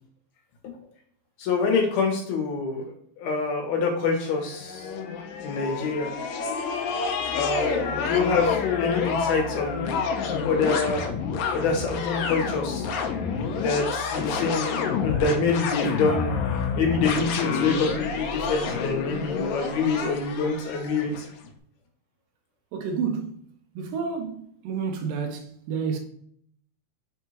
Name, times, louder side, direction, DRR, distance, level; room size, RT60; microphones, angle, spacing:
voice 1, 1.4-2.9 3.2-4.8 5.4-6.1 7.3-10.0 10.4-11.1 11.5-12.9 13.6-16.3 16.8-21.2, left 4 dB, 70° left, 3.0 m, -26 dB
sound 1, 4.2-21.3, left 5 dB, 85° left, 2.0 m, -28 dB
voice 2, 7.8-8.1 22.7-23.4 23.7-26.0, right 5 dB, 85° right, 1.9 m, -30 dB
6.6 x 3.6 x 4.3 m
omnidirectional pair, 4.9 m